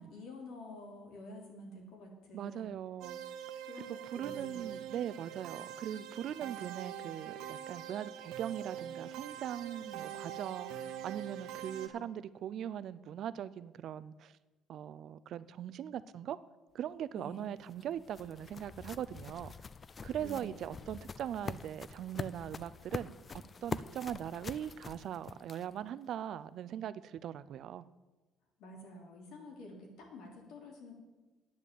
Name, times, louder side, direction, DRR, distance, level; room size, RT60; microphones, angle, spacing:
voice 1, 0.0-2.7 3.7-4.6 17.1-17.5 20.2-20.7 28.6-30.9, left 1 dB, 80° left, 0 dB, 3.1 m, -49 dB
voice 2, 2.3-3.2 3.9-14.3 14.7-16.4 16.7-19.5 20.0-23.1 23.6-27.9, right 10 dB, 55° right, 16 dB, 0.4 m, -40 dB
sound 1, 3.0-11.9, right 10 dB, 85° right, 0.9 m, -44 dB
sound 2, 17.3-25.9, left 5 dB, 25° left, 0.3 m, -45 dB
9.5 x 7.6 x 8.3 m, 1.2 s
cardioid pair, 155°, 0 cm